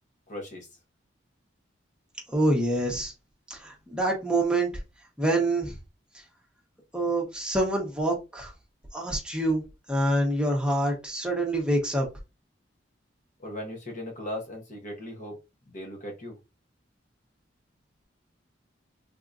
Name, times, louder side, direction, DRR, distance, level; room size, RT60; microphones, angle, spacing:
voice 1, 0.3-0.7 13.4-15.4 15.7-16.4, left 1 dB, 40° left, 0.9 m, -38 dB
voice 2, 2.3-3.1 3.5-4.7 5.2-5.8 6.9-8.5 8.9-9.6 9.9-12.1, right 1 dB, 5° right, 1.0 m, -26 dB
3.6 x 2.7 x 2.5 m
head